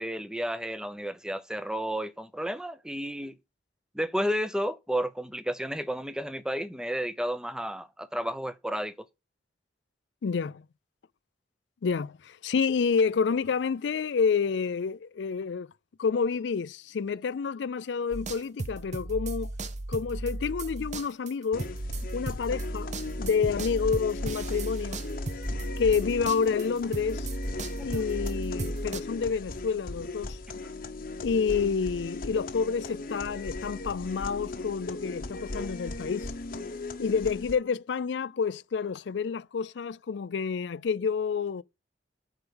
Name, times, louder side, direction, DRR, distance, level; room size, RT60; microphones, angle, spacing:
voice 1, 0.0-3.3 3.9-8.9 27.8-28.1, equal, 5° right, 0.6 m, -32 dB
voice 2, 10.2-10.6 11.8-15.7 16.0-19.5 19.9-21.7 22.1-25.0 25.8-27.3 27.8-30.4 31.2-36.3 37.0-41.6, left 5 dB, 70° left, 0.4 m, -29 dB
sound 1, 18.1-26.7 26.9-29.0, right 2 dB, 40° right, 0.7 m, -35 dB
sound 2, 21.5-37.5, left 2 dB, 50° left, 0.9 m, -37 dB
8.0 x 4.7 x 7.1 m
head